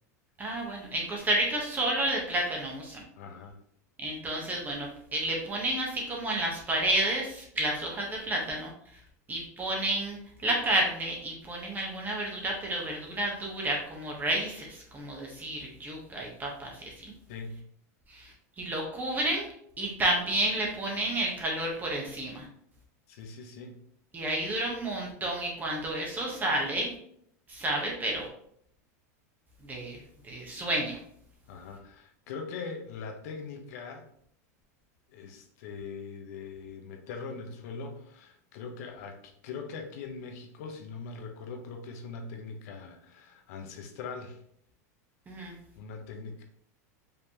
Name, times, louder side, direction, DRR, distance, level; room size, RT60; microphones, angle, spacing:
voice 1, 0.4-3.0 4.0-8.7 9.3-17.1 18.1-19.5 19.8-22.5 24.1-26.9 27.5-28.3 29.6-31.0 45.3-45.5, right 1 dB, 20° right, -1 dB, 1.2 m, -31 dB
voice 2, 3.2-3.6 17.3-17.6 23.1-23.8 31.5-34.1 35.1-44.4 45.4-46.4, left 4 dB, 70° left, 4 dB, 1.0 m, -41 dB
5.2 x 3.2 x 2.9 m, 0.66 s
supercardioid pair, 120°, 9 cm